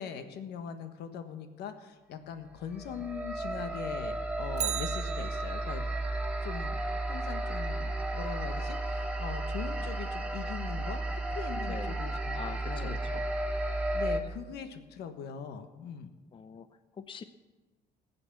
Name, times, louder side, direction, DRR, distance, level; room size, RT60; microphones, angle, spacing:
voice 1, 0.0-5.9 6.4-6.8 7.1-13.2 13.9-16.1, left 7 dB, 75° left, 8 dB, 1.4 m, -41 dB
sound 1, 2.7-14.2, right 2 dB, 5° right, 2.0 m, -33 dB
Bicycle, 4.5-5.9 14.2-14.3, right 10 dB, 45° right, 0.5 m, -37 dB
voice 2, 11.5-12.0 12.3-13.2 16.3-16.7 17.0-17.2, left 6 dB, 30° left, 11 dB, 0.6 m, -43 dB
15.0 x 8.5 x 7.2 m, 1.2 s
cardioid pair, 110°, 17 cm